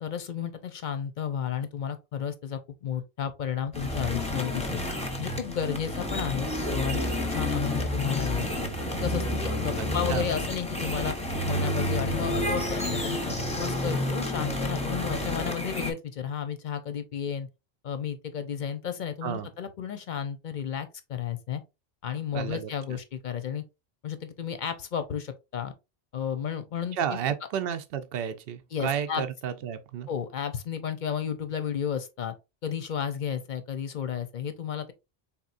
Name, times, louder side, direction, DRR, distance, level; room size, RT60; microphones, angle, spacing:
voice 1, 0.0-4.8 5.2-7.0 7.3-8.5 9.0-11.2 11.4-17.5 17.8-21.6 22.0-23.6 24.0-25.7 26.1-27.2 28.7-29.2 30.1-32.3 32.6-34.9, left 8 dB, 55° left, 0.7 m, -32 dB
sound 1, 3.7-15.9, left 1 dB, 5° left, 0.7 m, -30 dB
voice 2, 9.8-10.3 19.2-19.5 22.3-23.0 26.9-30.1, right 8 dB, 65° right, 0.8 m, -32 dB
4.3 x 3.6 x 2.5 m
omnidirectional pair, 1.1 m